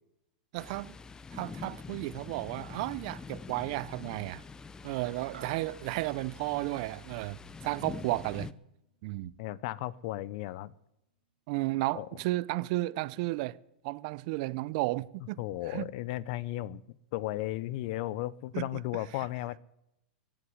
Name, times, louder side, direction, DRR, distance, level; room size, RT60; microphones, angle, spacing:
voice 1, 0.5-0.9 1.3-4.4 4.8-8.5 9.0-9.3 11.5-13.6 13.8-15.4 15.7-15.9 18.5-18.7, right 20 dB, 50° right, 0.6 m, -33 dB
Thunder, 0.6-8.5, left 4 dB, 15° left, 0.6 m, -45 dB
sound 1, 8.7-10.0, right 8 dB, 80° right, 4.7 m, -56 dB
voice 2, 9.4-10.7 11.9-12.1 15.4-19.6, left 16 dB, 55° left, 0.7 m, -35 dB
15.5 x 8.7 x 9.6 m
hypercardioid pair, 125°, 5 cm